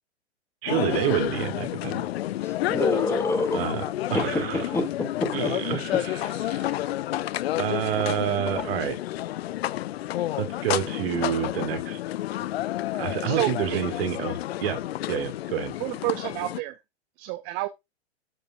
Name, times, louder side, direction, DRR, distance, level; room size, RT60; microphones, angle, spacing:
voice 1, 0.6-2.1 3.5-3.8 4.1-4.6 5.3-6.8 7.6-9.0 10.4-12.0 13.0-14.8 15.1-15.7, right 10 dB, 55° right, 2.0 m, -28 dB
sound 1, 0.7-16.6, left 14 dB, 60° left, 0.5 m, -30 dB
voice 2, 2.4-3.6 4.1-4.9 5.2-5.8, left 2 dB, 5° left, 2.1 m, -27 dB
voice 3, 13.2-13.8 15.8-16.8 17.2-17.7, right 18 dB, 30° right, 0.5 m, -29 dB
13.0 x 5.2 x 2.4 m
hypercardioid pair, 110°, 35 cm